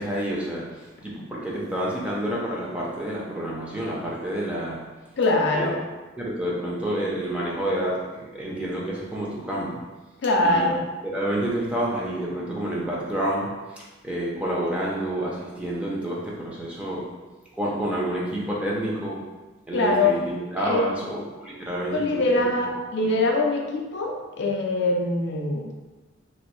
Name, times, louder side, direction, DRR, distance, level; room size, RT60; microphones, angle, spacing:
voice 1, 0.0-4.9 5.5-5.7 6.2-9.9 10.4-10.7 11.0-17.2 17.6-19.3 19.7-22.2 23.0-23.1, right 1 dB, 5° right, -5 dB, 0.4 m, -29 dB
voice 2, 5.2-5.8 10.2-10.8 19.7-20.2 20.6-21.1 21.9-25.9, left 2 dB, 55° left, 1 dB, 0.4 m, -23 dB
3.0 x 2.6 x 3.0 m, 1.2 s
head